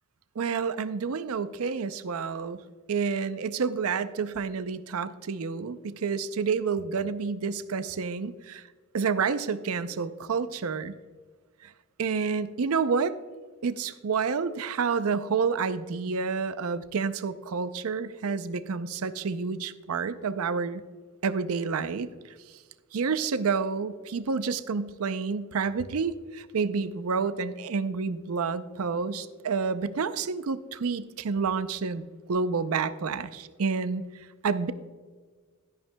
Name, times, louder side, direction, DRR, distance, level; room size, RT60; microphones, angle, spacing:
voice 1, 0.4-2.6 2.9-8.6 8.9-10.9 11.6-11.7 12.0-13.2 13.6-20.8 21.2-22.1 22.9-32.0 32.3-34.0 34.4-34.7, right 5 dB, 70° right, 13 dB, 0.5 m, -29 dB
12.5 x 10.5 x 2.2 m, 1.5 s
head